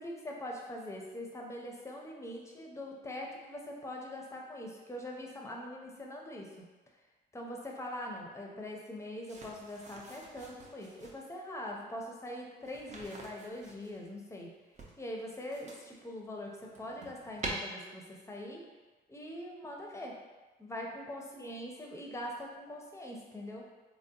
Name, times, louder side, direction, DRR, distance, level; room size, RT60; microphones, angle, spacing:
voice 1, 0.0-6.6 7.3-14.5 15.0-18.6 19.1-20.2 20.6-23.7, left 1 dB, 15° left, -1 dB, 0.6 m, -43 dB
sound 1, 9.3-11.2 12.6-14.0 14.8-16.0 16.5-17.5, right 2 dB, 35° right, 0.6 m, -46 dB
3.4 x 2.1 x 2.8 m, 1.2 s
cardioid pair, 90°, 20 cm